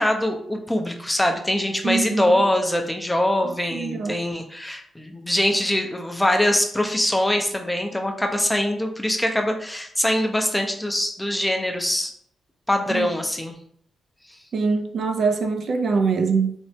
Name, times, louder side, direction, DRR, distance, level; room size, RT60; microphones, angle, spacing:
voice 1, 0.0-12.1 12.7-13.5, left 1 dB, 10° left, 0.4 m, -23 dB
voice 2, 1.8-2.4 3.7-4.2 12.9-13.1 14.5-16.5, right 4 dB, 60° right, 0.3 m, -23 dB
3.2 x 2.0 x 2.7 m
cardioid pair, 75°, 0 cm